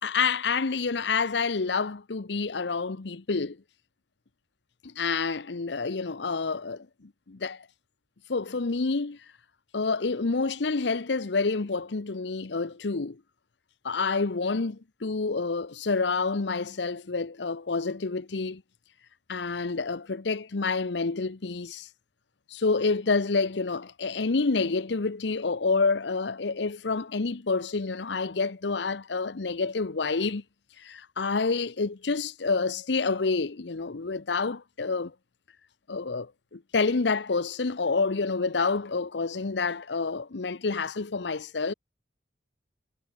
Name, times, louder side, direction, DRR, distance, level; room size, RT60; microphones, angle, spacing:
voice 1, 0.0-3.6 4.8-7.7 8.3-9.2 9.7-13.2 13.8-18.6 19.3-21.9 22.5-30.4 30.8-35.1 35.9-41.7, left 4 dB, 75° left, 0.8 m, -28 dB
head